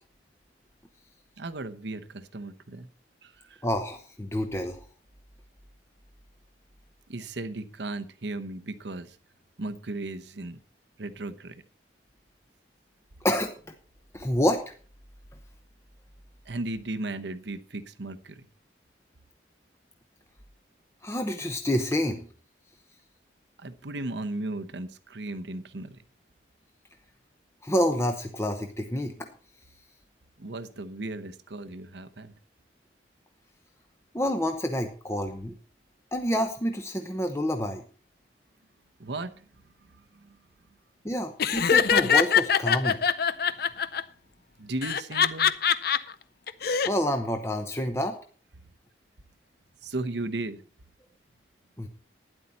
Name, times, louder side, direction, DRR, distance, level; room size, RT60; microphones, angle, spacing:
voice 1, 1.4-2.9 3.2-3.6 7.1-9.2 9.6-10.6 11.0-11.6 16.5-18.5 23.6-26.0 30.4-32.3 39.0-39.4 40.2-40.4 43.5-43.7 44.6-45.6 49.8-50.6, right 2 dB, 70° right, 11 dB, 0.9 m, -36 dB
voice 2, 3.6-4.8 13.2-13.7 14.1-14.6 21.0-22.3 27.6-29.3 34.1-35.5 36.1-37.8 41.0-43.0 46.9-48.2 51.8-51.9, equal, 15° left, 5 dB, 0.9 m, -28 dB
Laughter, 41.4-44.0 44.8-46.0 46.5-46.9, left 7 dB, 55° left, 0.6 m, -23 dB
12.5 x 10.0 x 4.2 m, 0.40 s
head